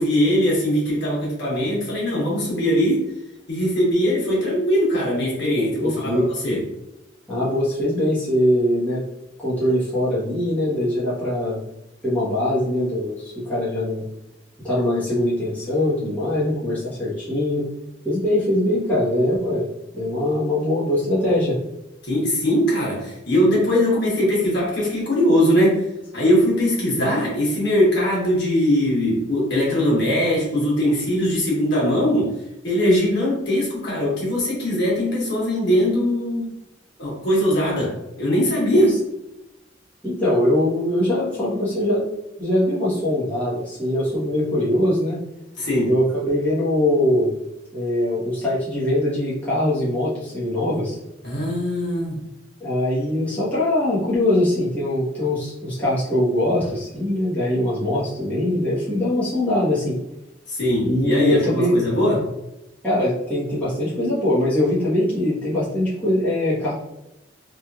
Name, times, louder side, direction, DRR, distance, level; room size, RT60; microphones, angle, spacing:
voice 1, 0.0-3.0 3.5-6.7 22.0-32.3 32.6-36.5 37.0-39.0 45.6-46.0 51.2-52.2 60.5-62.2, equal, 65° left, -6 dB, 1.3 m, -21 dB
voice 2, 5.8-6.3 7.3-9.0 9.4-11.6 12.0-14.0 14.6-17.7 18.0-19.7 19.9-21.6 38.7-38.8 40.0-42.0 42.4-45.2 45.8-47.3 47.7-51.0 52.6-60.0 60.8-61.7 62.8-66.7, left 1 dB, 10° left, -11 dB, 1.0 m, -22 dB
3.0 x 2.4 x 2.4 m, 0.91 s
head